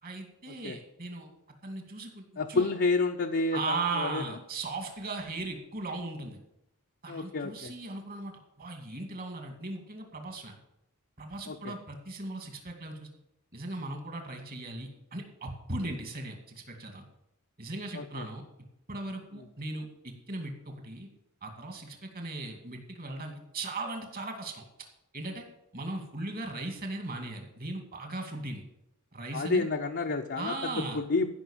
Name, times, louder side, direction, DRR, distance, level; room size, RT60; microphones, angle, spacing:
voice 1, 0.0-1.3 1.6-2.7 3.5-6.4 7.0-10.6 11.2-13.1 13.5-17.0 17.6-18.4 18.9-21.1 21.4-24.9 25.1-25.4 25.7-28.6 29.1-29.7 30.4-31.0, right 2 dB, 40° right, 4 dB, 2.4 m, -38 dB
voice 2, 2.4-4.2 7.1-7.7 11.5-11.7 17.9-18.3 29.3-31.3, left 3 dB, 50° left, 2 dB, 0.8 m, -30 dB
15.0 x 5.9 x 7.3 m, 0.84 s
head